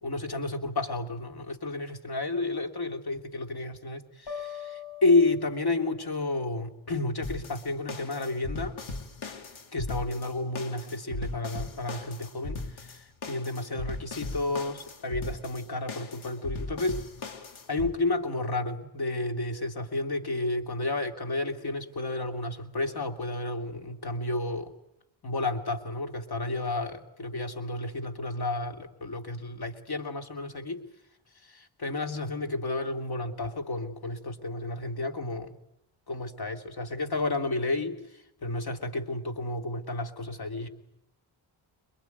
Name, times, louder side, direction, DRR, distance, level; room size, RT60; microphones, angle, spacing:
voice 1, 0.0-8.8 9.7-17.0 17.7-24.7 25.2-30.8 31.4-35.6 36.1-40.7, left 2 dB, 50° left, 6 dB, 3.0 m, -31 dB
sound 1, 4.3-6.2, left 7 dB, 70° left, 6.5 m, -41 dB
sound 2, 7.2-17.9, left 3 dB, 85° left, 2.5 m, -38 dB
23.0 x 22.0 x 9.4 m, 0.86 s
cardioid pair, 60°, 47 cm